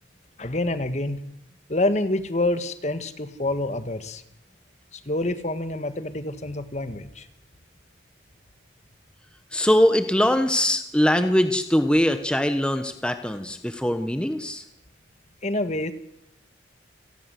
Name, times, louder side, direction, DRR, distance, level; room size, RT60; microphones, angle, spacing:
voice 1, 0.4-1.2 1.7-4.2 4.9-7.3 15.4-15.9, left 2 dB, 35° left, 11 dB, 1.7 m, -27 dB
voice 2, 9.5-14.6, equal, 5° left, 8 dB, 1.2 m, -22 dB
28.5 x 19.0 x 7.8 m, 0.79 s
head